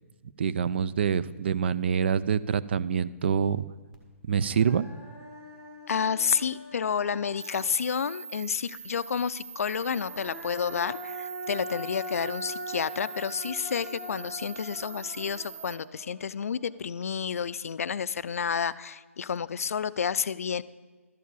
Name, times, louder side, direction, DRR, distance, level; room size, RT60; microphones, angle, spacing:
voice 1, 0.4-3.6 4.2-4.9, right 7 dB, 50° right, 17 dB, 0.4 m, -26 dB
Human voice, 3.9-4.0 4.4-8.1 9.7-17.0, equal, 10° right, 1.2 m, -42 dB
voice 2, 5.9-20.6, left 7 dB, 75° left, 17 dB, 0.4 m, -30 dB
sound 1, 7.4-15.7, right 6 dB, 90° right, 1.0 m, -43 dB
12.0 x 4.7 x 8.3 m, 1.4 s
hypercardioid pair, 165°, 8 cm